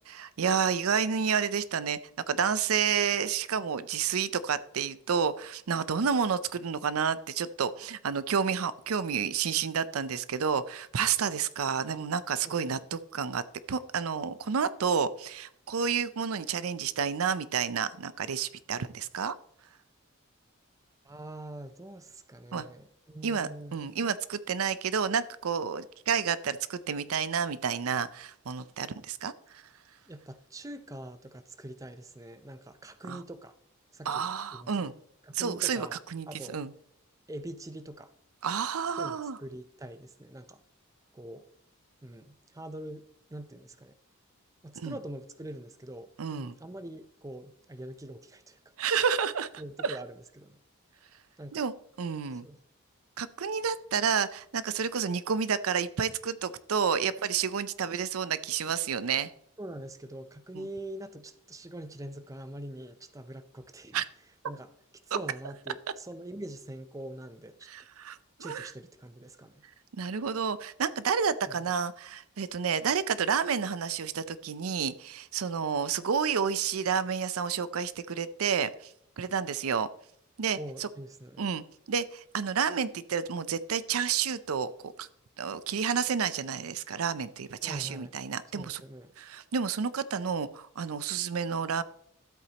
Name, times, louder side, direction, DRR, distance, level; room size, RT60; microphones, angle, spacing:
voice 1, 0.1-2.0 2.3-13.4 13.7-19.3 22.5-22.7 23.2-29.6 33.1-33.2 34.1-34.9 35.3-36.7 38.4-39.4 44.8-44.9 46.2-46.5 48.8-49.5 49.8-50.0 51.5-51.7 52.0-52.4 53.2-59.3 60.5-60.7 63.9-64.0 67.7-68.7 69.9-79.9 80.4-80.9 81.4-85.1 85.4-88.8 89.2-91.8, right 6 dB, 80° right, 0.5 m, -30 dB
voice 2, 12.4-12.8 21.0-23.8 30.1-33.6 33.9-34.2 34.5-36.6 37.3-38.1 39.0-40.6 41.1-41.5 42.0-44.0 44.6-48.7 49.6-50.6 51.4-51.6 52.3-52.6 59.6-64.0 64.5-64.7 65.1-67.7 68.4-69.6 71.5-71.7 80.6-81.4 87.6-88.1 88.5-89.1, right 1 dB, 15° right, 0.5 m, -44 dB
12.5 x 8.1 x 2.9 m
head